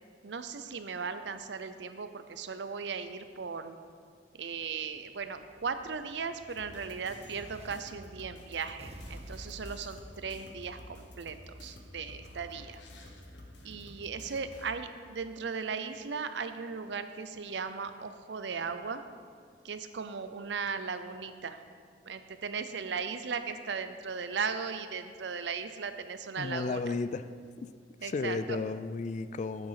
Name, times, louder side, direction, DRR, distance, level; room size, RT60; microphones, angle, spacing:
voice 1, 0.2-3.8 4.4-12.8 13.6-19.0 19.6-21.6 22.1-27.0 28.0-28.6, right 5 dB, 65° right, 10 dB, 0.6 m, -37 dB
Explosion, 4.5-7.8 8.8-10.8, right 1 dB, 35° right, 0.7 m, -50 dB
sound 1, 6.5-14.7, left 1 dB, 70° left, 1.3 m, -50 dB
voice 2, 26.4-27.3 27.6-27.7 28.0-29.7, left 4 dB, 40° left, 14 dB, 0.3 m, -33 dB
8.8 x 7.8 x 5.8 m, 2.1 s
head